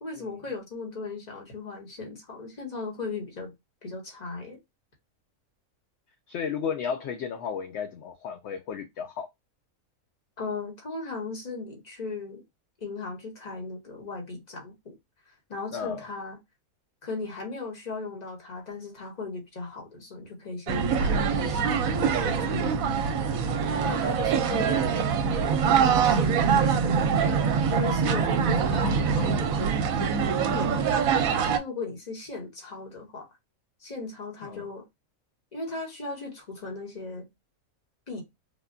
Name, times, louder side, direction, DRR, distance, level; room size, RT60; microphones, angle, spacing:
voice 1, 0.0-3.5 3.8-4.6 10.4-12.4 12.8-15.0 15.3-16.4 17.0-23.3 23.8-25.0 25.4-26.7 27.7-29.6 30.5-30.9 31.5-33.3 33.8-34.8 35.5-37.3 38.1-38.2, left 3 dB, 30° left, 1.1 m, -37 dB
voice 2, 6.3-9.3 15.7-16.0 34.4-34.6, left 7 dB, 65° left, 0.7 m, -33 dB
sound 1, 20.7-31.6, right 6 dB, 70° right, 1.0 m, -24 dB
3.5 x 2.2 x 2.5 m
omnidirectional pair, 1.5 m